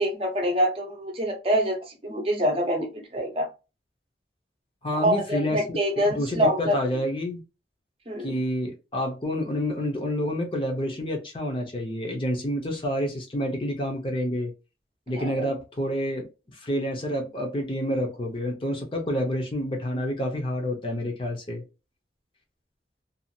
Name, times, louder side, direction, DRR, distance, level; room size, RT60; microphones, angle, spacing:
voice 1, 0.0-3.5 5.0-6.8 8.1-8.4 15.1-15.5, equal, 30° right, 0.7 m, -25 dB
voice 2, 4.8-5.8 6.0-7.4 8.2-14.5 15.1-21.6, equal, 30° left, 0.6 m, -28 dB
2.6 x 2.4 x 2.8 m
head